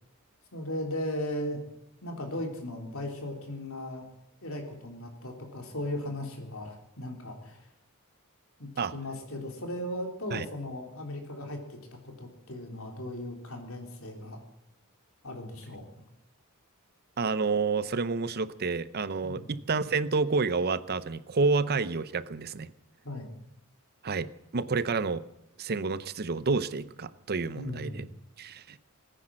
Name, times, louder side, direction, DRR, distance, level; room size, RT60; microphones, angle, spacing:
voice 1, 0.5-1.6 2.0-4.1 4.4-7.7 8.6-11.8 12.0-14.4 15.2-15.8 19.2-19.5 23.0-23.3 27.5-28.1, left 1 dB, 65° left, 3 dB, 3.7 m, -37 dB
voice 2, 17.2-22.7 24.0-24.3 24.5-25.2 25.6-28.0 28.4-28.8, right 4 dB, 45° right, 15 dB, 0.7 m, -29 dB
19.0 x 10.0 x 7.6 m, 0.87 s
head